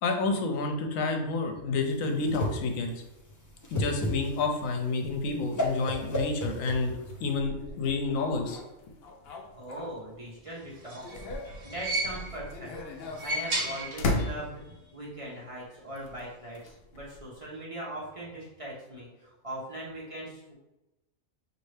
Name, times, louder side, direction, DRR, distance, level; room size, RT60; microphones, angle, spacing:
voice 1, 0.0-2.9 3.7-6.9 7.2-8.6, left 3 dB, 80° left, 4 dB, 1.0 m, -29 dB
Whoosh swoosh swish, 1.8-7.3, equal, 30° left, 0.3 m, -34 dB
sound 1, 5.0-10.4 10.7-15.0 16.0-17.4, left 2 dB, 60° left, 0.7 m, -38 dB
voice 2, 9.5-11.3 11.6-12.7 13.2-20.5, right 1 dB, 30° right, -6 dB, 0.9 m, -40 dB
sound 2, 10.6-12.5 13.0-14.4 14.7-14.8 15.9-16.0, right 2 dB, 55° right, 1.1 m, -34 dB
5.3 x 2.7 x 3.2 m, 0.97 s
omnidirectional pair, 1.4 m